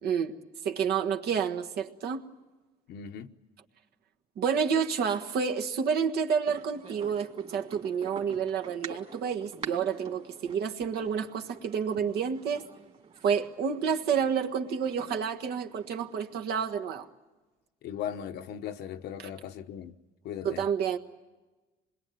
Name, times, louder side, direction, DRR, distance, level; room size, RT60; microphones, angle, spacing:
voice 1, 0.0-0.3 0.6-2.3 4.4-12.6 13.2-17.1 19.2-19.3 20.4-21.0, right 7 dB, 70° right, 1.5 m, -29 dB
voice 2, 2.9-3.3 17.8-19.9 20.2-20.6, left 9 dB, 75° left, 1.1 m, -38 dB
sound 1, 6.5-16.5, right 5 dB, 40° right, 2.6 m, -47 dB
26.5 x 21.5 x 9.3 m
cardioid pair, 110°, 17 cm